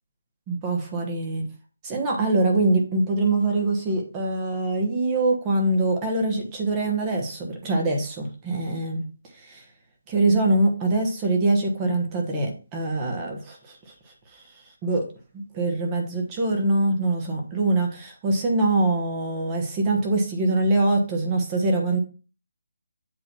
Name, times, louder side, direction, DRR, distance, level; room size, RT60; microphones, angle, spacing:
voice 1, 0.5-1.4 1.8-9.0 9.4-9.6 10.1-13.6 14.8-15.0 15.3-22.0, right 2 dB, 20° right, 1 dB, 1.2 m, -23 dB
7.8 x 2.8 x 6.1 m, 0.35 s
hypercardioid pair, 160°, 0 cm